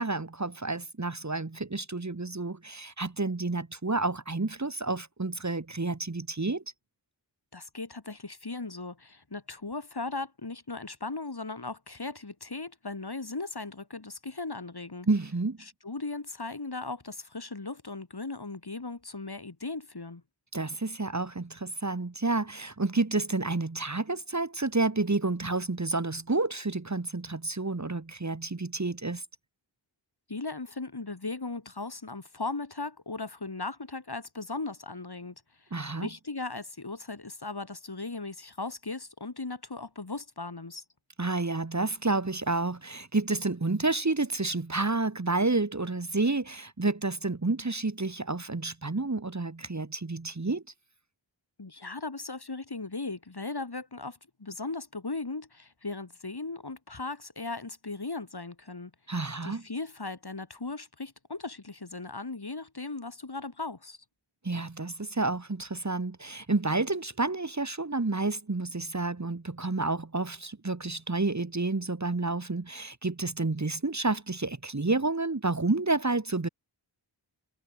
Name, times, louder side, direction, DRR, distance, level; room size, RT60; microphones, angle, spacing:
voice 1, 0.0-6.6 15.1-15.6 20.5-29.2 35.7-36.1 41.2-50.6 59.1-59.6 64.4-76.5, right 3 dB, 35° right, 2.0 m, -30 dB
voice 2, 7.5-15.1 15.6-20.2 30.3-35.7 36.0-40.8 51.6-58.9 59.4-64.0, left 3 dB, 55° left, 5.4 m, -37 dB
wide cardioid pair, 50°, 46 cm